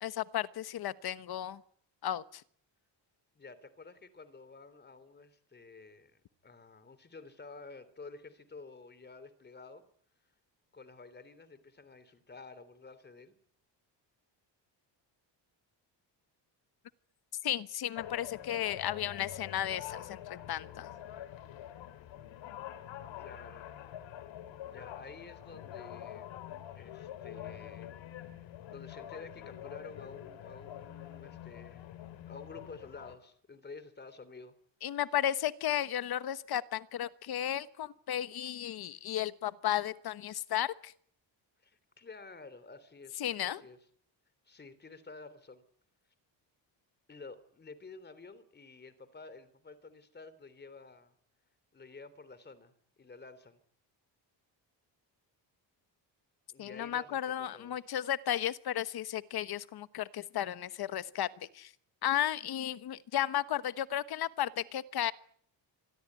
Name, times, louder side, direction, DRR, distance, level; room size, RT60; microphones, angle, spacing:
voice 1, 0.0-1.6 2.0-2.4 17.4-20.9 34.8-40.9 43.2-43.6 56.6-61.7 62.0-65.1, left 11 dB, 55° left, 15 dB, 1.2 m, -34 dB
voice 2, 3.3-9.8 10.7-13.3 23.2-23.7 24.6-26.3 26.7-28.0 28.7-31.9 32.3-34.5 41.6-43.8 44.4-45.6 47.1-51.1 51.7-53.6 56.5-57.8, left 4 dB, 25° left, 15 dB, 3.2 m, -51 dB
sound 1, 17.9-33.2, left 11 dB, 85° left, 2.7 m, -46 dB
26.0 x 21.0 x 9.5 m, 0.63 s
cardioid pair, 150°, 44 cm